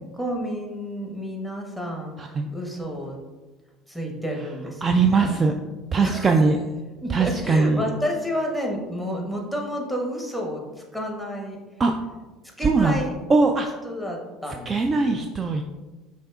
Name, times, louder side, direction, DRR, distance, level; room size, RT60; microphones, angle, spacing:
voice 1, 0.1-3.2 3.9-5.4 6.0-6.4 7.0-11.6 12.6-13.1 13.8-15.3, equal, 5° right, 0 dB, 1.1 m, -30 dB
voice 2, 2.2-2.5 4.8-5.5 5.9-6.5 7.1-7.8 11.8-11.9 12.6-13.0 13.3-13.7 14.7-15.6, right 4 dB, 30° right, 4 dB, 0.3 m, -20 dB
5.3 x 3.6 x 2.3 m, 1.2 s
hypercardioid pair, 70°, 0 cm